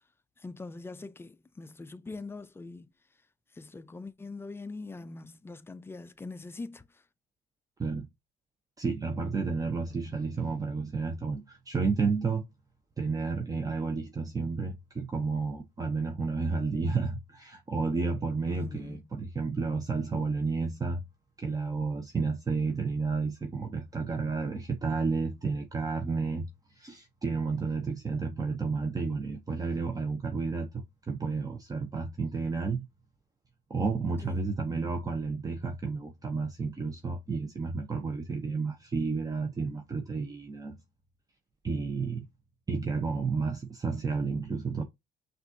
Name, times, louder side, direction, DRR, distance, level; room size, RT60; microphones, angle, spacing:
voice 1, 0.4-2.9 3.5-6.9 18.5-19.0 34.2-34.4, left 3 dB, 15° left, 0.4 m, -42 dB
voice 2, 8.8-12.4 13.0-21.0 21.4-26.4 26.8-32.9 33.7-40.8 41.6-42.3 42.7-44.8, right 4 dB, 20° right, 0.8 m, -31 dB
6.0 x 2.5 x 2.7 m
cardioid pair, 110°, 17 cm